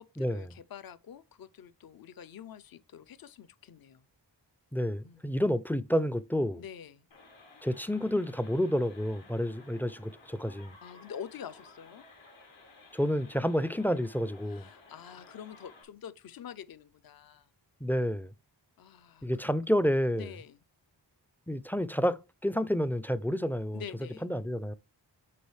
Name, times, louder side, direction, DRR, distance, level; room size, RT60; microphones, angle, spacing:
voice 1, 0.0-4.1 5.0-5.2 6.6-7.1 10.8-12.1 14.4-17.5 18.8-19.5 20.1-20.6 23.7-24.3, left 8 dB, 55° left, 0.5 m, -46 dB
voice 2, 4.7-6.6 7.6-10.8 12.9-14.7 17.8-18.3 19.2-20.3 21.5-23.8 24.2-24.7, equal, 5° left, 0.3 m, -29 dB
sound 1, 7.1-15.8, left 3 dB, 80° left, 1.6 m, -55 dB
8.5 x 4.0 x 3.1 m
wide cardioid pair, 70°, 44 cm